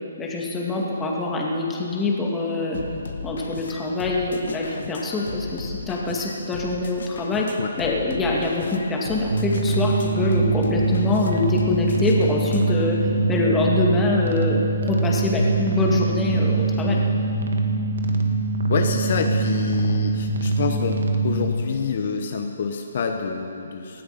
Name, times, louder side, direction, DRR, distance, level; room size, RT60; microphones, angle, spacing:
voice 1, 0.2-2.8 3.2-17.0, left 2 dB, 10° left, -2 dB, 2.0 m, -24 dB
sound 1, 2.7-12.8, left 5 dB, 70° left, 1.4 m, -36 dB
sound 2, 9.3-21.5, right 3 dB, 70° right, 1.9 m, -23 dB
voice 2, 18.7-24.0, left 5 dB, 55° left, 4 dB, 1.1 m, -27 dB
18.5 x 12.5 x 5.8 m, 2.9 s
hypercardioid pair, 155°, 0 cm